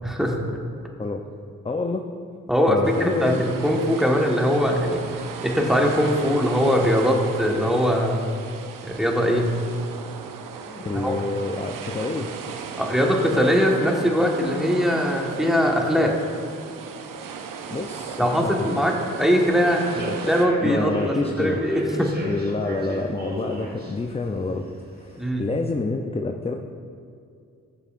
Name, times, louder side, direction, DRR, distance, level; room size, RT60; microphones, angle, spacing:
voice 1, 0.0-0.4 2.5-5.0 5.4-8.4 8.8-9.5 11.0-11.1 12.8-16.1 18.2-19.9 20.3-22.1 25.2-25.5, equal, ahead, 0 dB, 1.4 m, -21 dB
voice 2, 1.6-2.1 2.7-3.4 10.7-12.3 17.7-18.5 20.0-20.2 20.6-21.6 22.2-24.7 25.0-26.5, left 3 dB, 20° left, 4 dB, 0.5 m, -28 dB
sound 1, 2.8-20.5, right 6 dB, 80° right, 0.6 m, -37 dB
Human voice / Subway metro underground, 19.7-25.3, right 1 dB, 30° right, 1.4 m, -36 dB
14.5 x 6.8 x 2.5 m, 2.3 s
cardioid pair, 55°, 33 cm